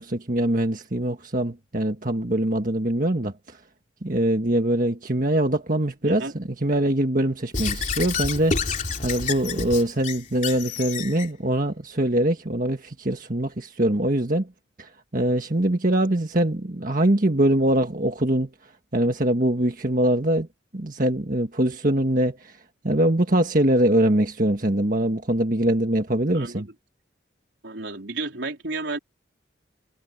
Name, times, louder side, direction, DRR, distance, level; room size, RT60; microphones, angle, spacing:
voice 1, 0.0-3.6 4.0-14.5 14.8-18.5 18.9-20.5 20.7-22.5 22.8-26.7, right 1 dB, 45° right, 1.6 m, -23 dB
voice 2, 6.0-6.3 26.3-26.7 27.6-29.0, right 3 dB, 70° right, 3.7 m, -32 dB
Squeak / Writing, 7.5-11.3, left 4 dB, 40° left, 3.3 m, -29 dB
head